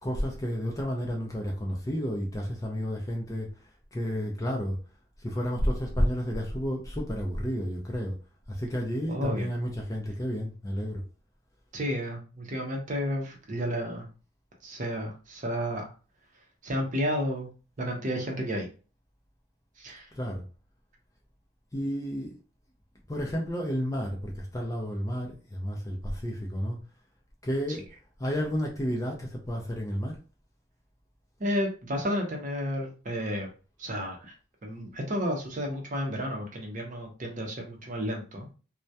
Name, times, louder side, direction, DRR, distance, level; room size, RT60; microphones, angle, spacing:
voice 1, 0.0-3.5 3.9-4.8 5.2-8.1 8.5-11.0 20.1-20.4 21.7-22.3 23.1-26.8 27.4-27.9 28.2-30.2, equal, 15° left, 0.4 m, -31 dB
voice 2, 9.1-9.5 11.7-14.1 14.6-15.9 16.6-17.5 17.8-18.7 19.8-20.1 31.4-33.5 33.8-34.3 34.6-38.5, equal, 35° right, 0.6 m, -31 dB
2.2 x 2.1 x 2.7 m
head